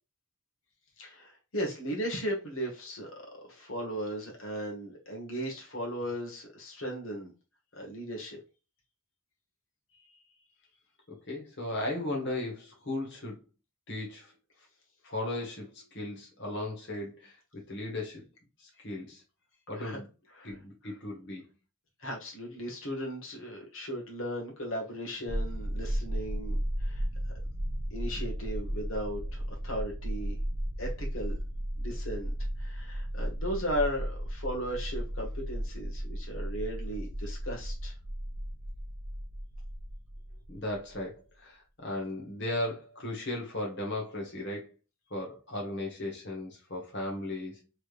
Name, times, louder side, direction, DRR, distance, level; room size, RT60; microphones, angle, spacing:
voice 1, 1.0-3.1 3.4-7.3 7.7-8.4 19.7-20.0 20.4-20.5 22.0-27.1 27.9-30.4 30.8-31.3 31.8-37.9, equal, 80° left, 1.3 m, -36 dB
voice 2, 11.1-13.4 13.9-14.3 15.0-18.2 18.6-19.2 19.7-20.1 20.4-21.4 40.5-44.7 45.1-47.6, left 1 dB, 55° left, 1.2 m, -36 dB
sound 1, 25.3-41.0, equal, 25° right, 0.7 m, -35 dB
3.3 x 3.2 x 2.4 m
head